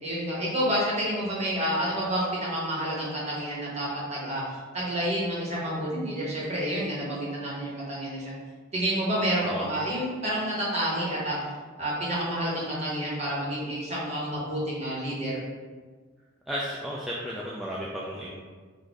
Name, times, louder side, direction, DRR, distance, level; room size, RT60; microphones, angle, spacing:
voice 1, 0.0-4.4 4.7-8.3 8.7-11.4 11.8-15.4, equal, 30° right, -6 dB, 1.3 m, -29 dB
voice 2, 16.5-18.3, equal, ahead, -6 dB, 0.3 m, -33 dB
4.3 x 2.6 x 4.6 m, 1.5 s
head